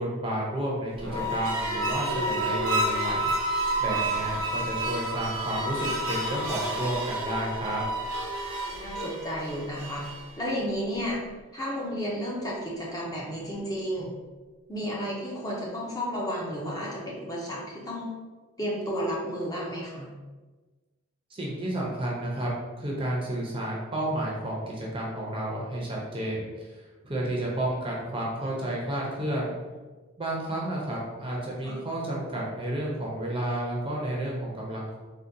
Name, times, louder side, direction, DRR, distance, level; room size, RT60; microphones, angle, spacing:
voice 1, 0.0-3.5 3.8-7.8 21.3-22.5 22.8-29.6 30.2-35.0, right 1 dB, 25° right, -4 dB, 0.6 m, -31 dB
sound 1, 0.9-10.3, right 1 dB, 70° right, 0.6 m, -30 dB
voice 2, 8.7-10.1 10.4-11.2 11.5-14.1 14.7-18.1 18.6-20.1 31.6-31.7, equal, 20° left, -4 dB, 0.6 m, -32 dB
3.7 x 2.2 x 2.6 m, 1.3 s
head